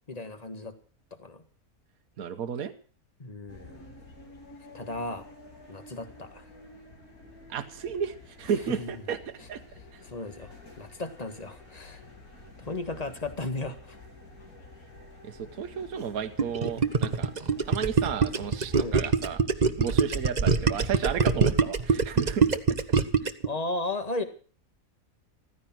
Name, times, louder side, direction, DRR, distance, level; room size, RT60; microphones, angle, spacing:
voice 1, 0.1-0.8 1.2-1.4 3.2-3.9 4.7-5.2 5.7-6.5 8.8-9.0 10.0-12.0 12.6-14.0 18.7-19.0 23.4-24.2, left 2 dB, 25° left, 8 dB, 1.9 m, -35 dB
voice 2, 2.2-2.7 7.5-9.6 9.9-10.0 15.2-17.3 17.6-19.4 19.8-22.8 23.2-23.3, right 7 dB, 75° right, 8 dB, 1.4 m, -33 dB
sound 1, 3.5-18.9, left 2 dB, 80° left, 4.4 m, -50 dB
Gurgling, 16.4-23.5, right 5 dB, 35° right, 1.0 m, -23 dB
14.5 x 14.5 x 6.0 m, 0.41 s
omnidirectional pair, 1.5 m